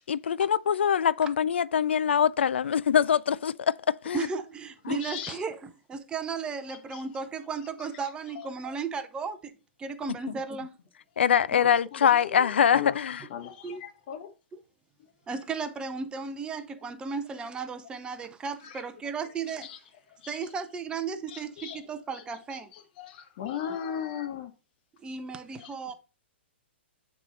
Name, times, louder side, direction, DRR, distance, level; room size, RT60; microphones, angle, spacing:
voice 1, 0.1-4.3 4.9-5.0 11.2-13.2, left 8 dB, 70° left, 0.3 m, -24 dB
voice 2, 4.1-9.5 9.8-10.8 11.6-11.7 12.0-12.1 13.6-13.8 14.5-14.6 15.3-19.7 20.3-22.7 25.0-25.9, right 5 dB, 15° right, 0.7 m, -35 dB
voice 3, 5.0-5.4 6.9-7.0 11.6-12.5 12.7-13.0 13.3-14.3 18.6-18.8 19.5-19.8 20.2-20.4 21.3-21.8 22.5-24.5 25.6-25.7, left 9 dB, 45° left, 1.1 m, -37 dB
8.9 x 3.7 x 4.0 m
figure-of-eight pair, 115°, 6 cm